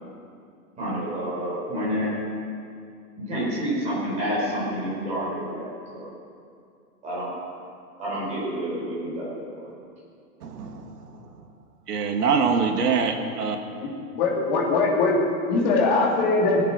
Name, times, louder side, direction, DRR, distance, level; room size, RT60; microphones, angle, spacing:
voice 1, 0.8-2.1 3.2-6.1 7.0-7.4 8.0-9.5, equal, 15° right, -7 dB, 4.4 m, -29 dB
voice 2, 10.4-10.9 11.9-13.6, right 5 dB, 85° right, 5 dB, 1.9 m, -24 dB
voice 3, 13.8-16.7, left 3 dB, 30° left, -2 dB, 2.6 m, -22 dB
19.5 x 8.1 x 6.2 m, 2.4 s
hypercardioid pair, 170°, 46 cm